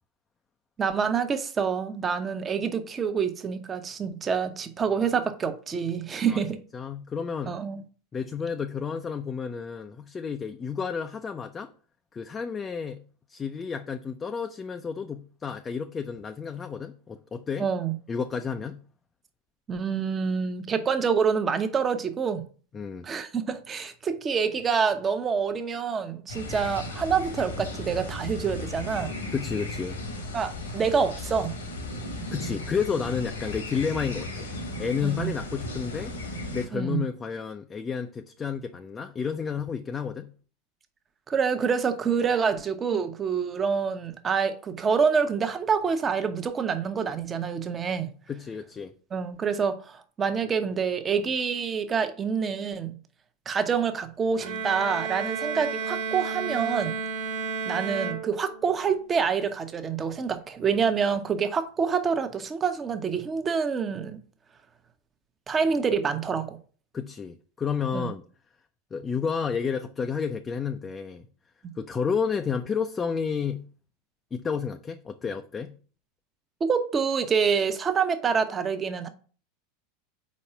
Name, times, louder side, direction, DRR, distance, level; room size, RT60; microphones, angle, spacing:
voice 1, 0.8-6.6 7.5-7.8 17.6-17.9 19.7-22.4 23.0-29.1 30.3-31.5 35.0-35.3 36.7-37.0 41.3-48.1 49.1-53.0 53.5-57.0 57.7-64.2 65.5-66.6 67.9-68.1 71.6-71.7 76.6-79.1, right 6 dB, 25° right, 0.9 m, -27 dB
voice 2, 6.7-7.6 8.1-11.7 12.1-13.0 13.3-17.7 18.1-18.8 22.7-23.1 29.3-30.0 32.3-34.5 34.8-36.1 36.5-40.3 48.3-48.9 66.9-68.2 68.9-71.3 71.8-73.7 74.3-75.8, left 6 dB, 25° left, 0.5 m, -31 dB
sound 1, 26.3-36.7, left 1 dB, 80° left, 1.4 m, -35 dB
Bowed string instrument, 54.4-58.9, right 5 dB, 55° right, 1.4 m, -32 dB
4.8 x 4.2 x 5.5 m
hypercardioid pair, 85°, 0 cm